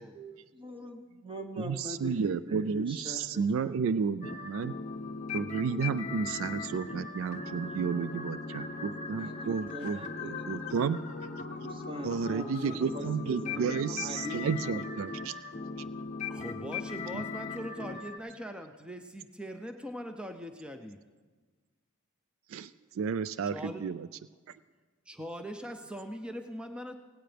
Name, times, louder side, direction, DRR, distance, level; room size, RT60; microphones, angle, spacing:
voice 1, 0.0-3.8 9.2-10.7 11.6-15.0, equal, 25° right, 5 dB, 1.0 m, -43 dB
voice 2, 1.6-4.7 5.3-11.0 12.0-15.3 17.1-17.2 22.5-24.1 24.5-24.6, right 6 dB, 70° right, 15 dB, 0.3 m, -32 dB
sound 1, 4.2-18.2, left 4 dB, 35° left, 0.7 m, -39 dB
voice 3, 6.2-6.5 6.9-7.0 7.4-7.7 8.4-9.1 9.6-9.7 16.3-21.0 23.5-23.9 25.1-26.9, equal, 5° right, 5 dB, 0.5 m, -42 dB
sound 2, 9.8-10.0 12.5-12.7 14.4-14.7 16.4-16.9, equal, 85° right, 3.1 m, -55 dB
18.0 x 16.5 x 3.4 m, 1.4 s
head